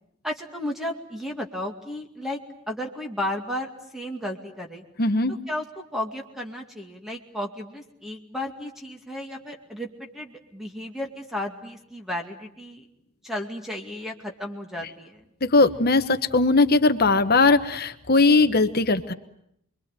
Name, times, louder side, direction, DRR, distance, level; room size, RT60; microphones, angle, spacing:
voice 1, 0.2-2.4 2.7-4.8 5.5-12.8 13.2-15.2, left 1 dB, ahead, 2 dB, 2.2 m, -33 dB
voice 2, 5.0-5.3 15.4-19.1, left 3 dB, 45° left, 10 dB, 1.1 m, -19 dB
28.5 x 23.0 x 9.0 m, 0.75 s
head